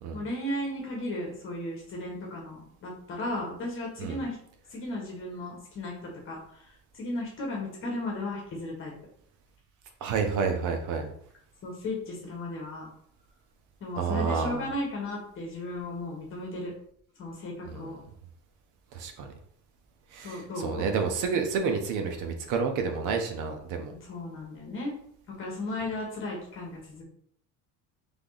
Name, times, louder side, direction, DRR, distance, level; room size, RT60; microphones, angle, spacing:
voice 1, 0.1-4.4 4.7-8.9 11.6-12.9 13.8-16.7 17.2-18.0 20.2-20.9 24.0-24.9 25.3-27.0, left 1 dB, 35° left, -2 dB, 1.3 m, -35 dB
voice 2, 10.0-11.1 13.9-14.6 17.7-18.0 18.9-19.3 20.1-23.9, right 5 dB, 60° right, 5 dB, 0.9 m, -29 dB
3.6 x 3.5 x 3.9 m, 0.66 s
cardioid pair, 155°, 35 cm